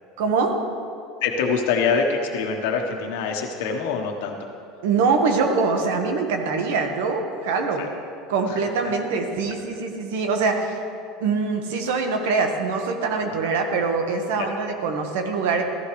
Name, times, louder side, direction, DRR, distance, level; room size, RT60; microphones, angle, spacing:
voice 1, 0.2-0.5 4.8-7.8 8.3-10.8 11.2-15.6, right 4 dB, 90° right, 4 dB, 1.5 m, -23 dB
voice 2, 1.2-4.4 7.8-7.9 8.5-8.6 13.4-13.5 14.4-14.5, left 5 dB, 85° left, 2 dB, 1.2 m, -25 dB
15.0 x 13.5 x 3.3 m, 2.5 s
cardioid pair, 155°, 0 cm